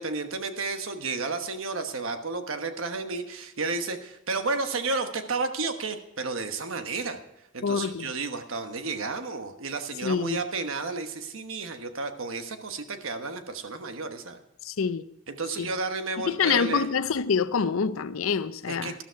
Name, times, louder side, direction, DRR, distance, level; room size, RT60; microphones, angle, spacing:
voice 1, 0.0-7.2 7.5-14.4 15.3-16.9 18.7-19.0, right 3 dB, 70° right, 1.2 m, -32 dB
voice 2, 7.6-8.1 10.0-10.4 14.6-15.0 15.6-15.7 16.2-18.9, left 6 dB, 75° left, 0.6 m, -26 dB
13.0 x 12.5 x 4.6 m
head